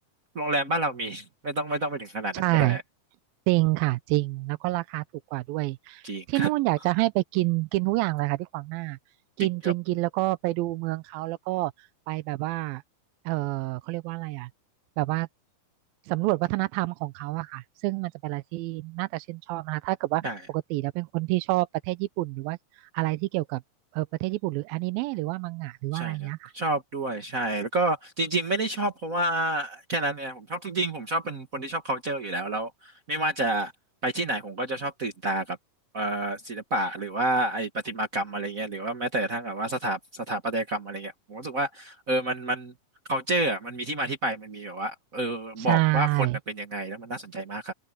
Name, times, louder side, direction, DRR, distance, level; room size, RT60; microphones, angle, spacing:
voice 1, 0.3-2.8 6.0-6.5 9.4-9.7 20.2-20.4 25.9-33.7 34.0-35.6 35.9-42.7 43.1-47.7, right 1 dB, 65° right, 0.8 m, -29 dB
voice 2, 2.3-2.8 3.5-5.0 5.3-6.0 6.3-9.0 9.4-11.7 12.1-12.8 13.3-14.5 15.0-15.3 16.1-20.2 20.5-22.6 22.9-23.6 23.9-26.5 45.6-46.4, right 20 dB, 85° right, 2.5 m, -27 dB
open air
omnidirectional pair, 4.2 m